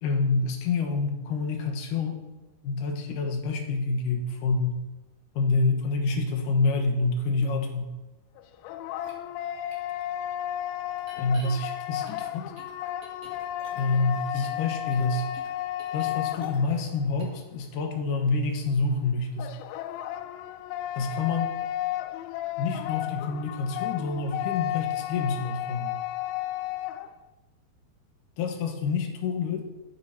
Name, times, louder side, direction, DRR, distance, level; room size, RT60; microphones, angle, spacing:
voice 1, 0.0-2.2 2.6-4.8 5.4-7.9 11.1-12.5 13.7-15.3 15.9-19.5 21.0-21.5 22.6-25.9 28.4-29.6, left 3 dB, 65° left, 3 dB, 2.4 m, -27 dB
sound 1, 8.4-17.1 19.4-27.1, left 13 dB, 80° left, 2.3 m, -33 dB
sound 2, 9.0-9.1 9.7-9.8 11.0-11.5 12.1-14.6 14.9-16.9 17.2-17.4, right 2 dB, 45° right, 2.5 m, -51 dB
8.1 x 7.1 x 5.8 m, 1.1 s
omnidirectional pair, 4.4 m